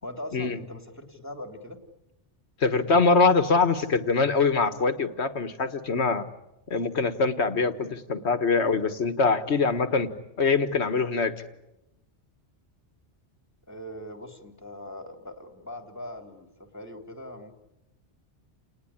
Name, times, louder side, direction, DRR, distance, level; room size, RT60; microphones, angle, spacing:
voice 1, 0.0-1.8 13.7-17.5, left 1 dB, 15° left, 6 dB, 2.8 m, -41 dB
voice 2, 2.6-6.2 6.7-10.1 10.4-11.3, left 4 dB, 70° left, 10 dB, 1.8 m, -23 dB
29.5 x 19.5 x 10.0 m, 0.91 s
omnidirectional pair, 1.2 m